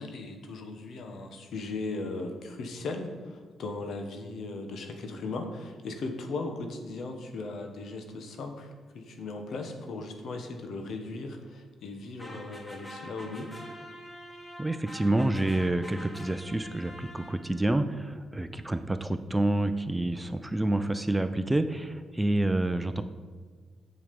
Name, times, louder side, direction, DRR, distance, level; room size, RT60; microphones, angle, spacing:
voice 1, 0.0-13.5, left 3 dB, 70° left, 5 dB, 1.2 m, -37 dB
sound 1, 12.2-17.7, equal, 20° left, 2.0 m, -46 dB
voice 2, 14.6-23.0, right 1 dB, 15° right, 10 dB, 0.6 m, -28 dB
7.4 x 6.4 x 5.3 m, 1.5 s
supercardioid pair, 65°, 0 cm